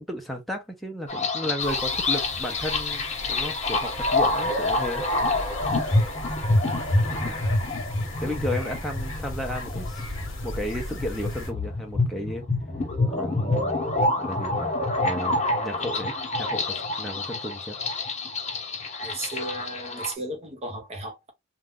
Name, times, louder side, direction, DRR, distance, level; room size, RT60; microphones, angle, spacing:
voice 1, 0.0-5.0 7.1-7.4 8.2-10.1 10.4-12.4 13.1-13.8 14.2-14.8 15.0-16.1 16.4-17.8, left 1 dB, ahead, 0.6 m, -33 dB
sound 1, 1.1-20.1, left 2 dB, 35° left, 0.8 m, -27 dB
sound 2, 1.6-11.5, left 2 dB, 65° left, 0.9 m, -37 dB
voice 2, 19.0-21.3, right 2 dB, 30° right, 0.8 m, -35 dB
2.5 x 2.3 x 3.5 m
head